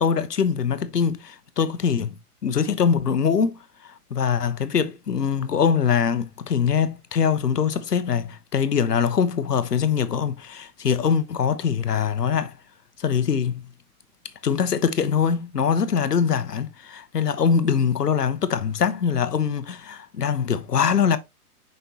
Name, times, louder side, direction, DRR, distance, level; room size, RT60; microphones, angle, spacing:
voice 1, 0.0-2.2 2.4-12.5 13.0-13.6 14.4-21.2, left 7 dB, 85° left, 1.0 m, -23 dB
6.1 x 5.5 x 2.9 m
figure-of-eight pair, 125°, 46 cm